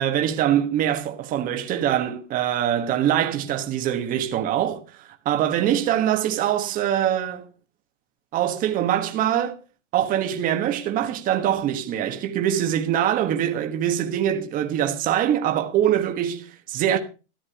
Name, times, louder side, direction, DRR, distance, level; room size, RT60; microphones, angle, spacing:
voice 1, 0.0-7.4 8.3-9.6 9.9-17.0, right 10 dB, 20° right, 1.4 m, -23 dB
13.5 x 9.9 x 5.7 m
hypercardioid pair, 155°, 37 cm